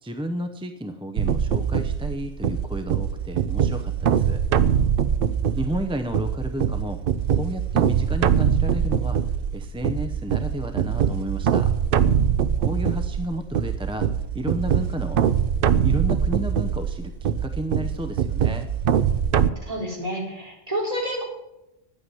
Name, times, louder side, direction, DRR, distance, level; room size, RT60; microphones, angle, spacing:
voice 1, 0.0-4.4 5.6-7.0 7.3-9.2 9.5-11.7 12.6-14.1 14.3-15.3 15.8-18.7, equal, 5° right, 6 dB, 0.5 m, -32 dB
sound 1, 1.2-19.5, right 8 dB, 55° right, 0.7 m, -23 dB
voice 2, 19.7-21.2, equal, 25° right, -3 dB, 3.9 m, -29 dB
10.0 x 8.7 x 9.5 m, 0.91 s
omnidirectional pair, 1.4 m